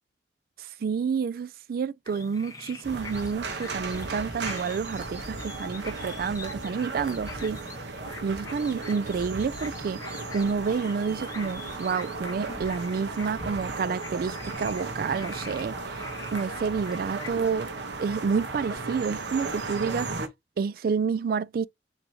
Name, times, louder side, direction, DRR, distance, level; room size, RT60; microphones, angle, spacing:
voice 1, 0.6-7.6 8.2-17.7 18.0-20.1 20.6-21.7, right 5 dB, 55° right, 0.3 m, -29 dB
sound 1, 2.1-17.3, left 4 dB, 20° left, 1.2 m, -45 dB
sound 2, 2.8-20.3, right 3 dB, 80° right, 1.1 m, -36 dB
6.1 x 2.9 x 2.9 m
head